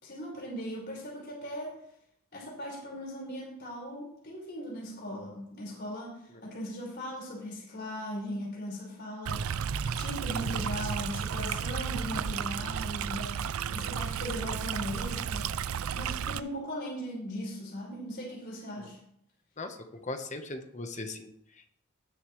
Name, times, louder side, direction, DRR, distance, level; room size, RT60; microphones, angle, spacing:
voice 1, 0.0-1.7 2.3-9.5 9.9-13.4 13.7-15.5 15.9-19.0, equal, 50° left, -5 dB, 5.2 m, -38 dB
Stream, 9.3-16.4, right 7 dB, 85° right, 0.4 m, -33 dB
voice 2, 19.6-21.7, left 2 dB, 35° left, 6 dB, 1.2 m, -40 dB
19.0 x 6.9 x 3.3 m, 0.72 s
head